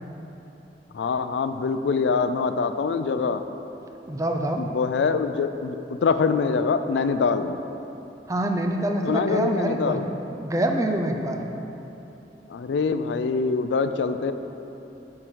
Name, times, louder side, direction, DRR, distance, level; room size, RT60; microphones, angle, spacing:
voice 1, 0.9-3.4 4.6-7.5 9.0-10.0 12.5-14.3, left 5 dB, 85° left, 10 dB, 0.4 m, -24 dB
voice 2, 4.1-4.6 8.3-10.0 10.4-11.4, right 1 dB, 20° right, 3 dB, 0.4 m, -25 dB
7.8 x 4.7 x 4.6 m, 3.0 s
head